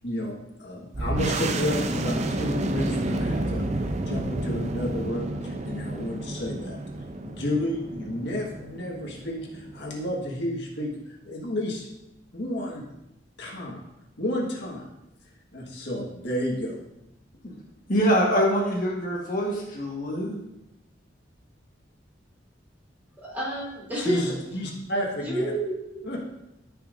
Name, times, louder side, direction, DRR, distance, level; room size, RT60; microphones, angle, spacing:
voice 1, 0.0-6.8 7.2-11.8 12.3-12.8 13.4-13.8 14.2-14.9 15.5-16.8 23.9-25.5 26.0-26.2, left 1 dB, 65° left, -3 dB, 1.6 m, -31 dB
sound 1, 0.9-10.2, right 1 dB, 40° right, 0.6 m, -30 dB
voice 2, 17.9-20.3, equal, 45° left, -3 dB, 1.4 m, -24 dB
voice 3, 23.2-24.3 25.3-25.7, right 1 dB, 10° right, -7 dB, 3.0 m, -29 dB
14.0 x 5.6 x 2.6 m, 0.89 s
head